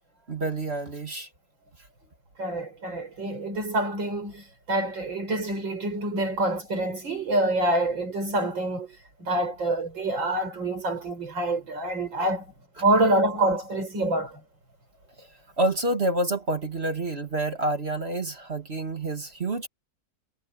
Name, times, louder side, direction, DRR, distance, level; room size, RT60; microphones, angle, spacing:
voice 1, 0.3-1.3 15.2-15.3 15.6-19.7, right 2 dB, 35° right, 2.1 m, -28 dB
voice 2, 2.4-12.5 12.8-14.4, right 1 dB, 90° right, 6.5 m, -26 dB
omnidirectional pair, 2.0 m